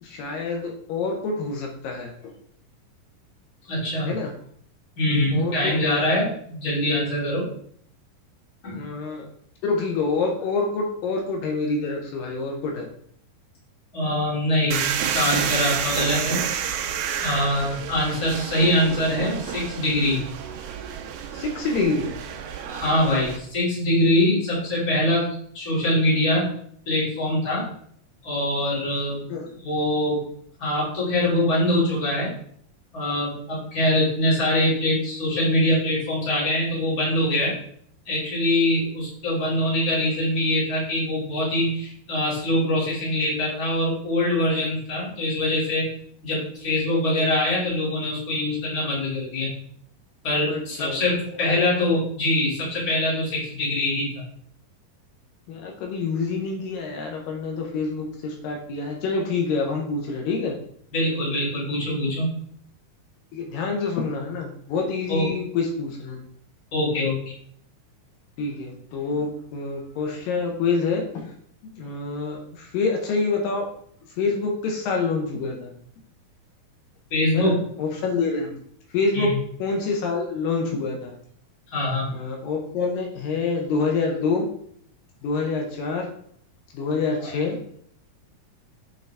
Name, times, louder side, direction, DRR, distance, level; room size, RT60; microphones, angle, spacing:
voice 1, 0.0-2.3 4.0-4.3 5.3-5.8 8.7-9.3 9.6-12.9 21.3-22.1 29.3-29.5 50.5-51.0 51.3-51.6 55.5-60.5 63.3-66.2 68.4-71.3 71.7-73.7 74.0-75.7 77.3-78.6 78.9-79.3 79.6-81.1 82.1-84.4 85.2-86.1 86.7-87.6, left 4 dB, 80° left, 1 dB, 2.5 m, -27 dB
voice 2, 3.7-4.1 5.0-7.5 8.6-8.8 13.9-16.4 17.2-20.2 22.7-26.5 26.9-27.7 28.2-29.2 29.6-30.2 30.6-32.3 32.9-37.5 38.1-45.9 46.2-49.5 50.2-54.2 60.9-62.3 65.1-65.3 66.7-67.3 77.1-77.6 79.1-79.3 81.7-82.1, left 1 dB, 30° left, -7 dB, 2.5 m, -23 dB
sound 1, 14.7-23.4, right 8 dB, 90° right, 2.4 m, -29 dB
7.8 x 3.9 x 3.3 m, 0.64 s
omnidirectional pair, 4.0 m